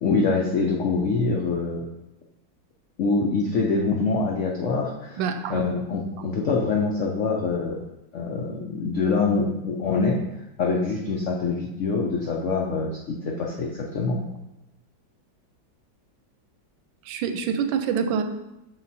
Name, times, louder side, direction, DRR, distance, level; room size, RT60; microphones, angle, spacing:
voice 1, 0.0-1.8 3.0-5.2 5.5-7.8 8.1-10.2 10.6-14.2, left 4 dB, 75° left, 0 dB, 0.6 m, -25 dB
voice 2, 5.2-5.6 17.1-18.2, right 7 dB, 85° right, 8 dB, 1.3 m, -26 dB
6.4 x 3.9 x 4.1 m, 0.93 s
omnidirectional pair, 2.0 m